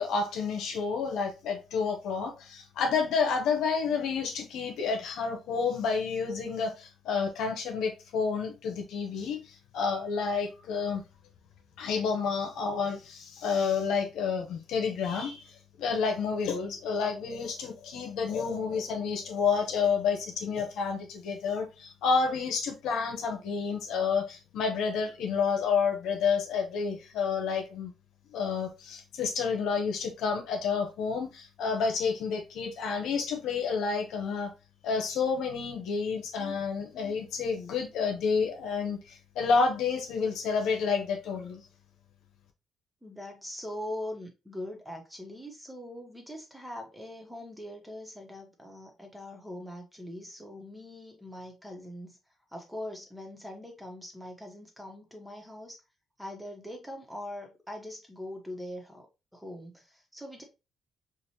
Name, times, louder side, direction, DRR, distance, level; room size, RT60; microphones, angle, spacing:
voice 1, 0.0-11.0 11.8-15.5 15.8-27.9 28.3-34.5 34.8-41.6, left 5 dB, 85° left, 1.0 m, -30 dB
voice 2, 43.0-52.2 52.5-55.8 56.2-59.1 59.3-60.4, left 1 dB, 5° right, 1.3 m, -42 dB
4.9 x 2.6 x 2.8 m
cardioid pair, 90°, 0 cm